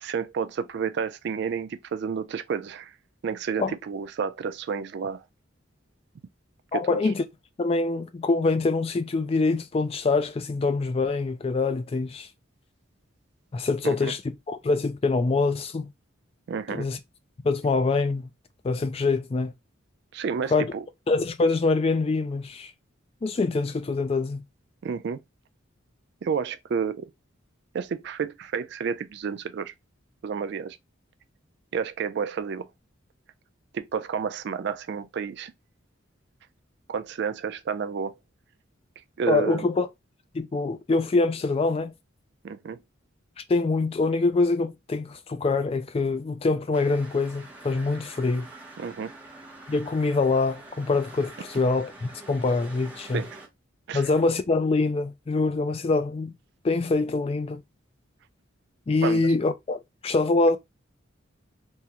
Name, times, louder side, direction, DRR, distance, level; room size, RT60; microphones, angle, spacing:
voice 1, 0.0-2.9 3.2-5.2 6.7-7.0 13.8-14.1 16.5-16.9 20.1-20.8 24.8-25.2 26.2-27.1 27.7-29.7 30.2-30.8 31.7-32.7 33.7-35.5 36.9-38.1 39.2-39.7 42.4-42.8 48.8-49.1 53.1-53.4 53.9-54.0 59.0-59.3, right 6 dB, 55° right, 0.3 m, -30 dB
voice 2, 6.7-7.2 7.6-12.3 13.5-14.2 14.5-15.9 16.7-17.0 17.4-18.3 18.6-19.5 20.5-20.7 21.1-22.7 23.2-24.4 39.3-39.9 40.3-41.9 43.5-48.5 49.7-53.2 53.9-56.3 56.6-57.6 58.9-60.6, left 3 dB, 30° left, 0.3 m, -24 dB
sound 1, 46.7-53.5, right 2 dB, 10° right, 0.7 m, -46 dB
3.6 x 2.1 x 2.8 m
head